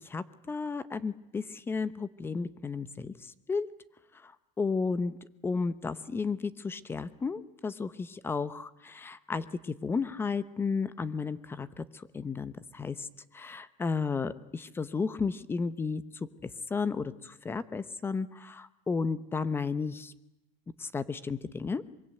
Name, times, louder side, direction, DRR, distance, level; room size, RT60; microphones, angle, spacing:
voice 1, 0.0-3.7 4.2-4.3 4.6-5.1 5.4-13.1 13.3-16.0 16.4-20.1 20.8-21.8, left 4 dB, 15° left, 16 dB, 0.9 m, -33 dB
25.0 x 23.5 x 7.9 m, 0.88 s
cardioid pair, 155°, 16 cm